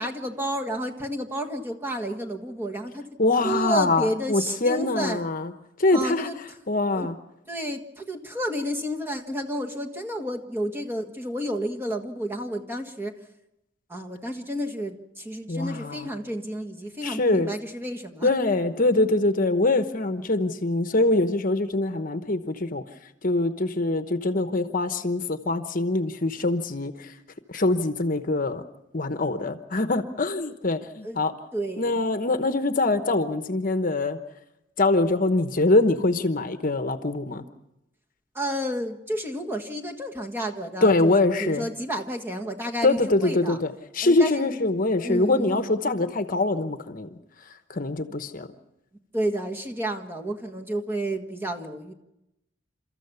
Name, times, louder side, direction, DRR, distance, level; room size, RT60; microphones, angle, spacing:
voice 1, 0.0-3.0 3.4-5.3 5.9-6.4 6.9-7.1 7.5-13.2 13.9-18.3 31.0-31.2 31.5-32.1 38.3-43.6 44.0-44.6 45.0-46.0 48.1-48.2 49.1-51.9, right 1 dB, 10° right, 2 dB, 1.5 m, -31 dB
voice 2, 3.2-5.5 5.8-6.3 6.7-7.1 15.5-16.1 17.0-17.5 18.2-22.8 23.2-27.1 27.5-28.6 28.9-31.3 31.8-34.2 34.8-37.4 40.8-41.7 42.8-47.2 47.7-48.5, left 2 dB, 45° left, 9 dB, 1.1 m, -24 dB
30.0 x 14.0 x 7.0 m, 0.90 s
head